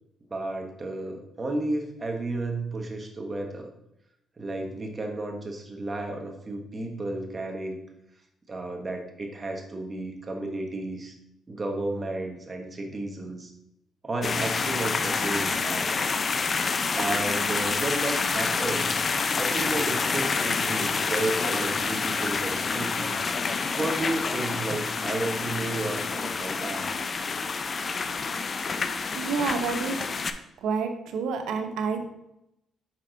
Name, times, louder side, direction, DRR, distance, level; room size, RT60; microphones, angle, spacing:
voice 1, 0.3-3.7 4.4-7.8 8.5-11.1 11.5-13.5 14.0-15.9 16.9-19.0 19.4-23.2 23.8-26.9, right 2 dB, 25° right, 2 dB, 1.3 m, -32 dB
sound 1, 14.2-30.3, left 4 dB, 40° left, 0.4 m, -28 dB
voice 2, 29.1-30.1 30.6-32.1, right 5 dB, 80° right, 5 dB, 0.8 m, -29 dB
6.0 x 4.2 x 3.9 m, 0.85 s
cardioid pair, 90°, 0 cm